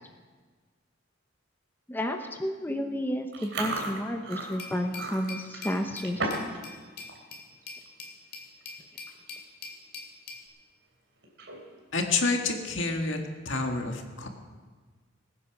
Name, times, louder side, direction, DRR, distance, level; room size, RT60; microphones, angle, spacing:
voice 1, 1.9-6.3, equal, 10° left, 4 dB, 0.8 m, -31 dB
Chewing mastication, 3.3-6.6 6.9-7.2 7.6-7.9 8.6-8.7 8.9-9.3 9.7-9.8 11.2-11.8, right 2 dB, 75° right, 3.1 m, -35 dB
Glass, 4.6-10.5, left 4 dB, 55° left, 2.6 m, -44 dB
voice 2, 11.9-13.2 13.5-14.3, left 3 dB, 70° left, 3 dB, 1.9 m, -28 dB
21.0 x 9.6 x 6.0 m, 1.4 s
head